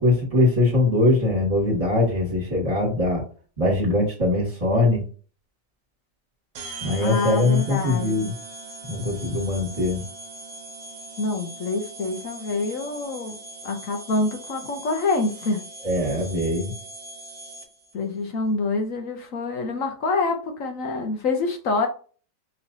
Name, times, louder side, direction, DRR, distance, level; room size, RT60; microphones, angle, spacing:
voice 1, 0.0-3.2 3.6-5.1 6.8-8.3 8.9-10.0 15.8-16.7, left 2 dB, 20° right, -4 dB, 1.9 m, -22 dB
sound 1, 6.5-17.9, right 2 dB, 80° right, 1.5 m, -40 dB
voice 2, 7.0-8.3 11.2-15.6 17.9-21.9, left 3 dB, 60° left, 5 dB, 1.1 m, -26 dB
5.5 x 3.2 x 2.7 m, 0.39 s
omnidirectional pair, 1.8 m